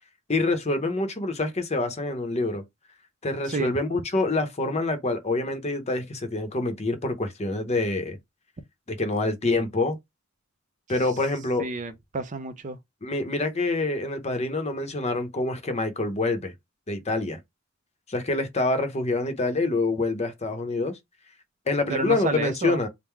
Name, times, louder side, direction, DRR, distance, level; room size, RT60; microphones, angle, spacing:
voice 1, 0.3-2.6 3.2-8.2 8.9-10.0 10.9-11.7 13.0-16.5 16.9-17.4 18.1-21.0 21.7-22.9, left 2 dB, 35° left, 0.8 m, -26 dB
voice 2, 11.6-12.8 21.9-22.8, right 3 dB, 40° right, 0.5 m, -30 dB
3.6 x 2.1 x 4.4 m
head